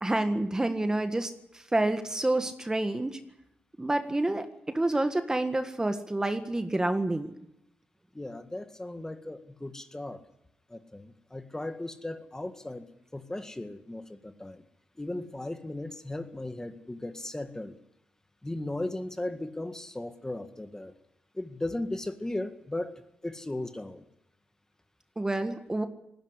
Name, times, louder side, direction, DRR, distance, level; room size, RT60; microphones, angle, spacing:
voice 1, 0.0-3.2 3.8-7.3 25.2-25.9, right 2 dB, 15° right, 8 dB, 1.7 m, -28 dB
voice 2, 8.1-10.2 10.7-14.6 15.0-17.8 18.4-20.9 21.3-24.1, left 1 dB, 15° left, 8 dB, 1.9 m, -37 dB
20.0 x 16.5 x 9.8 m, 0.82 s
cardioid pair, 100°, 4 cm